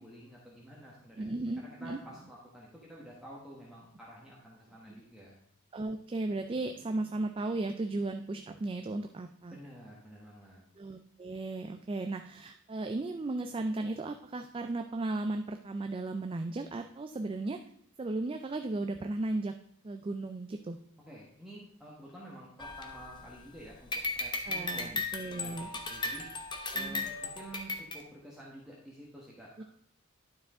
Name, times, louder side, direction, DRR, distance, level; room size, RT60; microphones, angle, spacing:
voice 1, 0.0-1.3 1.6-5.4 9.5-10.7 21.1-23.9 24.1-25.0 25.3-26.3 26.7-29.6, right 1 dB, 5° right, -6 dB, 1.2 m, -50 dB
voice 2, 1.2-2.0 4.9-5.0 5.7-9.6 10.8-17.6 18.0-19.5 19.8-20.8 24.5-25.7 26.7-27.1 29.6-29.7, right 2 dB, 25° right, 6 dB, 0.3 m, -35 dB
sound 1, 22.6-23.5 23.9-28.0, left 3 dB, 20° left, 0.7 m, -36 dB
11.5 x 4.8 x 3.7 m, 0.68 s
head